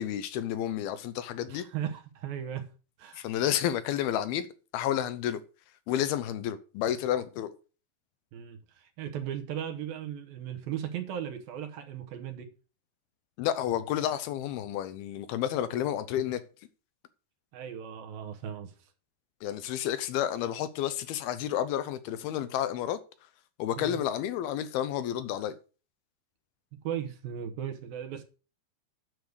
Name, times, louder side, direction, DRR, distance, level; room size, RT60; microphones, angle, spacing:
voice 1, 0.0-1.7 3.1-4.5 4.7-5.4 5.9-7.5 13.4-16.4 19.4-23.0 23.6-25.6, left 11 dB, 80° left, 2.5 m, -30 dB
voice 2, 1.5-2.7 3.0-3.2 8.3-12.5 17.5-18.7 23.8-24.0 26.8-28.2, right 9 dB, 75° right, 2.6 m, -37 dB
9.5 x 6.6 x 6.4 m
omnidirectional pair, 4.6 m